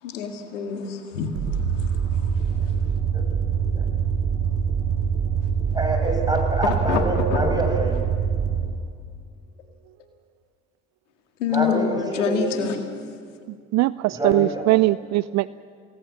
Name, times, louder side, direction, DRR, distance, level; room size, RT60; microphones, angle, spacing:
voice 1, 0.0-2.3 6.6-7.0 7.3-7.6 11.4-12.9, left 7 dB, 85° left, 5 dB, 2.1 m, -27 dB
sound 1, 1.3-8.7, right 7 dB, 75° right, 5.9 m, -24 dB
voice 2, 2.5-2.8 3.1-3.2 3.5-3.8 5.7-8.0 11.5-12.8 14.1-14.6, right 1 dB, 10° right, 1 dB, 7.5 m, -26 dB
voice 3, 13.7-15.5, right 18 dB, 50° right, 18 dB, 0.5 m, -20 dB
28.0 x 18.5 x 7.3 m, 2.2 s
hypercardioid pair, 65°, 36 cm